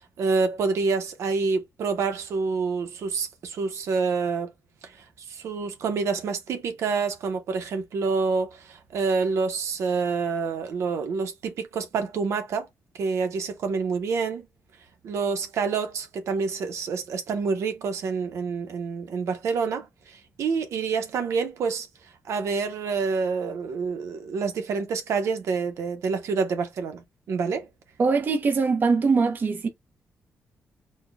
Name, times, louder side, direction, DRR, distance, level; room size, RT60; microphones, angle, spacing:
voice 1, 0.2-4.5 4.8-5.0 5.3-12.7 13.0-14.4 15.0-21.9 22.3-27.7, right 5 dB, 75° right, 0.9 m, -27 dB
voice 2, 28.0-29.7, right 4 dB, 40° right, 0.9 m, -22 dB
4.3 x 2.2 x 3.5 m
wide cardioid pair, 135°, 5 cm